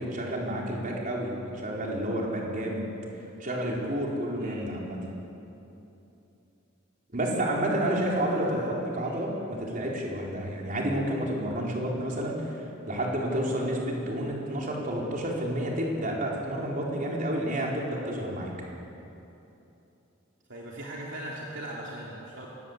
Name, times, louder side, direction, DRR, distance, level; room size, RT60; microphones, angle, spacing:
voice 1, 0.0-2.9 3.4-5.0 7.1-12.6 12.9-18.5, right 1 dB, 40° right, -2 dB, 4.6 m, -30 dB
voice 2, 7.8-8.7 9.0-9.2 20.5-22.5, right 1 dB, 60° right, -4 dB, 3.1 m, -39 dB
24.5 x 19.5 x 8.3 m, 2.9 s
head